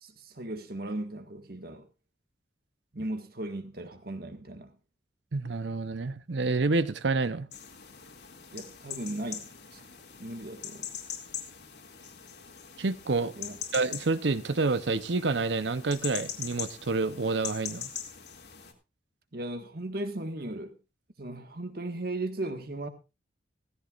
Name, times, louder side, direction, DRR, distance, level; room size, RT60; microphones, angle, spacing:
voice 1, 0.0-1.9 2.9-4.7 8.5-9.8 10.2-10.9 13.4-13.6 19.3-20.8 21.2-22.9, right 1 dB, 55° right, 1.7 m, -37 dB
voice 2, 5.3-7.5 12.8-13.3 13.7-17.9, right 3 dB, 75° right, 0.8 m, -28 dB
sound 1, 7.5-18.7, left 8 dB, 65° left, 2.4 m, -42 dB
16.0 x 14.5 x 2.5 m
head